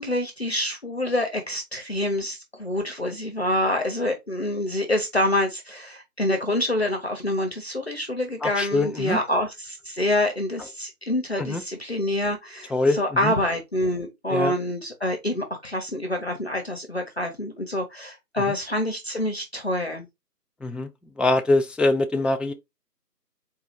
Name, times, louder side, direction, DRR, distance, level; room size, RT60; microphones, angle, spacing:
voice 1, 0.0-20.0, left 1 dB, 40° left, 0.7 m, -26 dB
voice 2, 8.4-9.2 11.4-11.6 12.7-13.0 13.2-13.3 14.3-14.5 20.6-20.9 21.2-22.5, left 2 dB, 5° right, 0.3 m, -23 dB
4.0 x 2.3 x 4.3 m
figure-of-eight pair, 165°, 49 cm